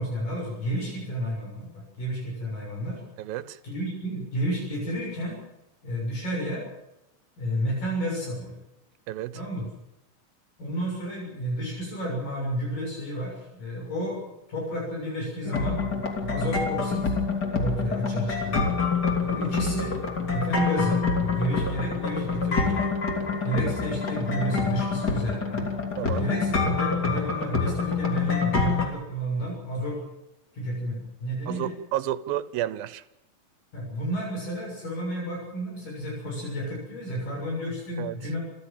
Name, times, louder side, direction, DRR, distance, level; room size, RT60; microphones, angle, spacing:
voice 1, 0.0-3.0 3.6-5.4 5.8-6.6 7.4-8.6 9.3-9.6 10.6-15.8 16.3-17.1 17.6-18.7 19.3-19.9 20.3-22.9 23.4-25.7 26.2-30.0 30.5-31.7 33.7-38.4, equal, 70° left, 8.5 m, -31 dB
voice 2, 3.2-3.6 9.1-9.4 26.0-26.3 31.5-33.0 38.0-38.2, right 13 dB, 90° right, 2.7 m, -31 dB
sound 1, 15.4-28.8, left 4 dB, 30° left, 3.3 m, -27 dB
28.0 x 14.0 x 7.5 m
omnidirectional pair, 4.1 m